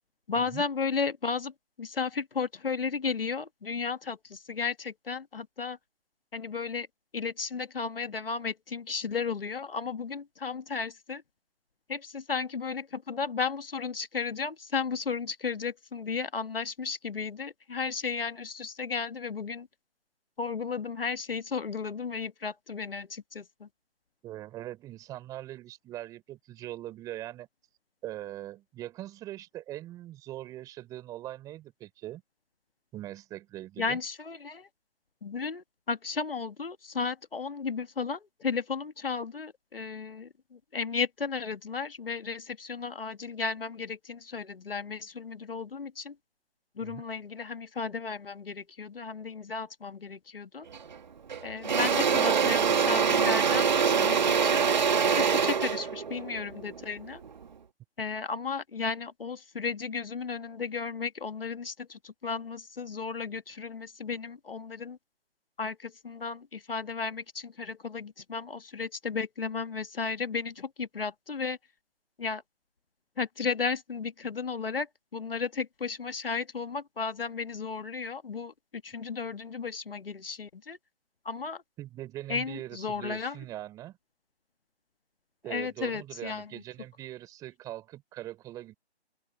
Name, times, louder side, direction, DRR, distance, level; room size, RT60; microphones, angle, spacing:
voice 1, 0.3-1.5 1.8-5.8 6.3-6.9 7.1-11.2 11.9-19.7 20.4-23.7 33.8-34.7 35.2-46.2 46.8-50.7 51.4-54.7 55.2-57.2 58.0-65.0 65.6-71.6 72.2-72.4 73.2-78.5 78.8-80.8 81.3-81.6 82.3-83.4 85.5-86.6, left 5 dB, 55° left, 1.8 m, -34 dB
voice 2, 24.2-27.5 28.0-32.2 32.9-34.0 46.8-47.0 81.8-84.0 85.4-88.7, right 14 dB, 10° right, 3.4 m, -41 dB
Engine / Drill, 50.7-51.0 51.3-57.4, right 6 dB, 40° right, 1.8 m, -25 dB
open air
figure-of-eight pair, 150°, 33 cm